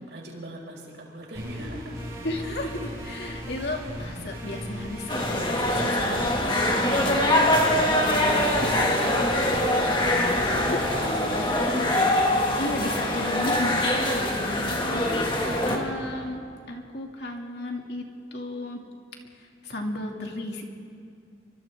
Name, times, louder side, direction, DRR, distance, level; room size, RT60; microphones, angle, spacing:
voice 1, 0.1-2.0 7.7-8.2 8.9-13.3, right 1 dB, 75° right, -2 dB, 5.7 m, -39 dB
sound 1, 1.3-10.7, equal, 20° right, 6.8 m, -37 dB
voice 2, 2.2-7.3 8.0-8.9 9.3-9.6 10.6-11.6 12.6-15.3 15.6-18.1 18.3-18.8 19.4-20.6, left 1 dB, 65° left, 1 dB, 2.6 m, -34 dB
sound 2, 5.1-15.8, left 1 dB, 25° left, 2.2 m, -23 dB
29.5 x 25.0 x 3.7 m, 2.4 s
head